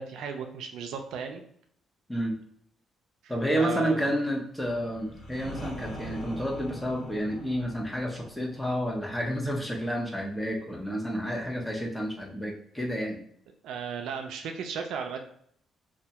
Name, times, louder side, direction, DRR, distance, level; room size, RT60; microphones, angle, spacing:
voice 1, 0.0-1.4 3.2-4.2 13.6-15.2, right 6 dB, 85° right, 4 dB, 0.4 m, -35 dB
voice 2, 3.3-13.2, equal, 10° left, 0 dB, 0.7 m, -30 dB
sound 1, 4.6-10.3, equal, 85° left, 0.9 m, -43 dB
2.2 x 2.1 x 2.8 m, 0.66 s
cardioid pair, 90°, 0 cm